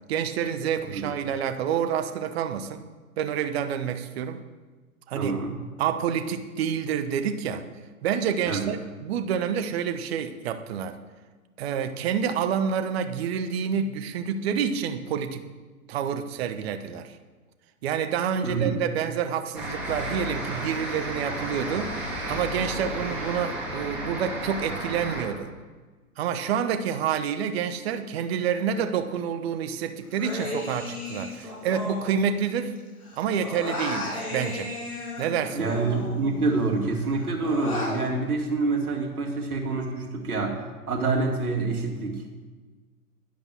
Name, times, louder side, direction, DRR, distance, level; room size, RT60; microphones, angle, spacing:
voice 1, 0.0-2.8 3.2-4.4 5.1-5.3 5.8-7.6 8.0-11.0 11.6-15.4 15.9-17.1 17.8-21.9 22.3-25.5 26.2-32.8 33.2-34.7 35.2-35.7, right 8 dB, 45° right, 8 dB, 0.9 m, -28 dB
voice 2, 5.1-5.6 8.4-8.7 18.4-18.8 35.5-40.6 40.9-42.2, right 3 dB, 75° right, 1 dB, 2.3 m, -27 dB
sound 1, 19.5-25.2, right 1 dB, 5° right, 3.2 m, -33 dB
Human voice, 30.1-32.8 33.0-36.5 36.9-38.0, left 2 dB, 75° left, 3.2 m, -35 dB
10.5 x 5.2 x 7.6 m, 1.3 s
figure-of-eight pair, 110°, 44 cm